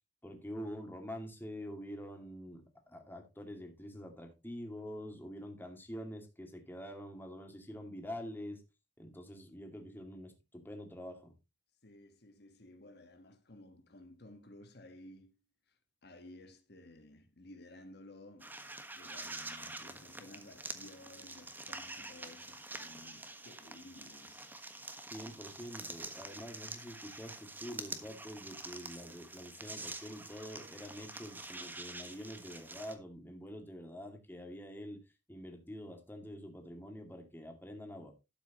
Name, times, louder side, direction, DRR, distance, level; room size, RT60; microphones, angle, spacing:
voice 1, 0.2-8.6 9.0-11.3 25.1-35.0 35.3-38.1, equal, 10° left, 2.3 m, -46 dB
voice 2, 11.8-15.4 15.7-18.6 19.0-24.5, left 1 dB, 60° left, 1.5 m, -55 dB
sound 1, 18.4-32.9, right 2 dB, 10° right, 1.4 m, -47 dB
12.5 x 8.4 x 3.0 m
head